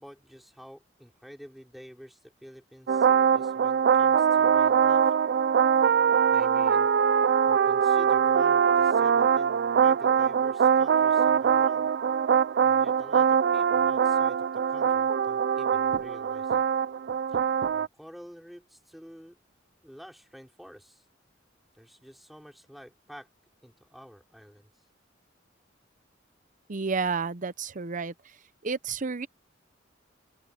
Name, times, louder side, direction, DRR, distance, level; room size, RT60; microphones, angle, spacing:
voice 1, 0.0-3.1 3.3-5.1 6.3-6.9 7.4-11.9 12.6-16.6 17.3-17.4 17.7-19.4 19.8-21.0 21.7-23.3 23.6-24.7, equal, ahead, 4.9 m, -49 dB
sound 1, 2.9-17.9, right 7 dB, 60° right, 0.4 m, -23 dB
voice 2, 26.7-28.4 28.6-29.3, right 5 dB, 45° right, 0.8 m, -31 dB
open air
head